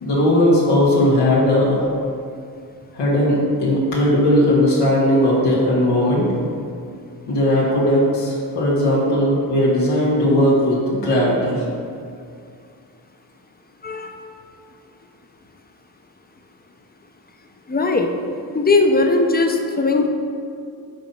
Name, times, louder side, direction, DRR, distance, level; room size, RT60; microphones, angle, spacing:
voice 1, 0.0-1.9 2.9-6.3 7.3-11.6, left 1 dB, 85° left, -7 dB, 1.5 m, -17 dB
voice 2, 13.8-14.1 17.7-18.1 18.5-20.1, left 3 dB, 25° left, 4 dB, 0.7 m, -18 dB
5.2 x 4.0 x 5.4 m, 2.4 s
cardioid pair, 65°, 40 cm